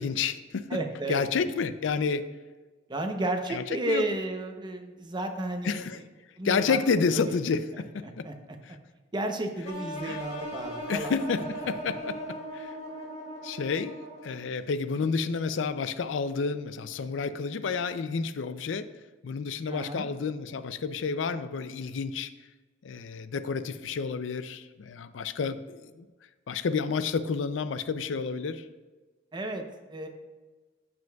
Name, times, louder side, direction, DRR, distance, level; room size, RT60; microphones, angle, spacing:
voice 1, 0.0-0.8 1.1-2.3 3.5-4.0 5.6-6.0 6.4-7.9 8.2-8.3 8.6-8.7 10.0-10.2 10.9-12.2 12.5-12.7 13.4-18.9 19.2-22.3 22.8-26.1 26.5-28.7, left 5 dB, 90° left, 12 dB, 0.4 m, -30 dB
voice 2, 0.7-1.2 2.9-5.8 6.4-7.1 8.2-8.3 9.1-11.1 19.7-20.1 29.3-29.6 29.9-30.1, right 1 dB, 25° right, 5 dB, 0.7 m, -32 dB
sound 1, 9.6-14.5, right 1 dB, 40° left, 2.4 m, -38 dB
15.0 x 5.1 x 2.3 m, 1.3 s
head